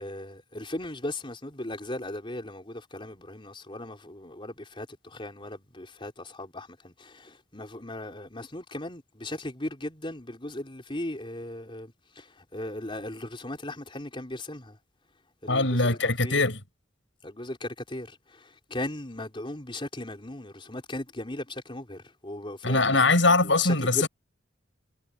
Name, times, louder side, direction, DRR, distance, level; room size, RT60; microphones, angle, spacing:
voice 1, 0.0-14.8 15.4-16.4 17.2-23.0 23.4-24.1, left 1 dB, 25° left, 4.2 m, -37 dB
voice 2, 15.5-16.6 22.6-24.1, left 3 dB, 80° left, 6.7 m, -22 dB
head